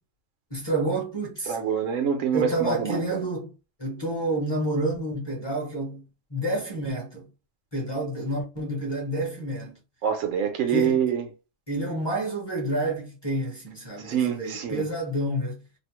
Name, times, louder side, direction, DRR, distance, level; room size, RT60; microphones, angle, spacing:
voice 1, 0.5-1.6 2.3-3.5 3.8-7.3 7.7-9.8 10.7-11.0 11.7-15.6, right 1 dB, 25° left, 0.7 m, -29 dB
voice 2, 1.5-3.2 10.0-11.3 14.0-14.9, right 8 dB, 90° right, 1.1 m, -26 dB
2.8 x 2.0 x 3.0 m
omnidirectional pair, 1.3 m